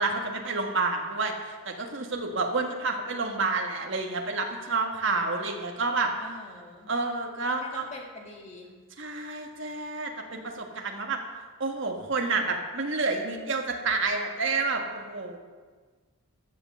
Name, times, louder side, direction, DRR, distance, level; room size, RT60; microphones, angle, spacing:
voice 1, 0.0-6.1 6.9-7.8 9.0-11.2 11.6-15.4, right 3 dB, 60° right, 2 dB, 1.6 m, -29 dB
voice 2, 6.2-6.9 7.5-8.7, left 2 dB, 30° left, 0 dB, 2.1 m, -44 dB
15.0 x 6.5 x 6.8 m, 1.4 s
head